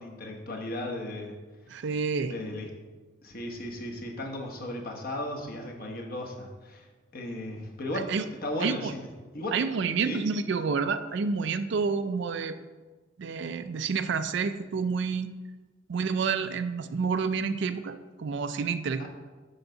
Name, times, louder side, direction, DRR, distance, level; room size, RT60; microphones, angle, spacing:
voice 1, 0.0-1.3 2.3-2.7 3.2-6.9 7.1-8.1 8.4-9.1 9.3-9.6 10.0-10.2 19.0-19.1, left 1 dB, 50° left, 1 dB, 1.1 m, -35 dB
voice 2, 1.7-2.3 7.9-8.3 8.6-8.9 9.5-12.6 13.2-15.3 15.9-19.1, right 5 dB, 60° right, 10 dB, 0.4 m, -29 dB
6.9 x 3.9 x 5.5 m, 1.3 s
head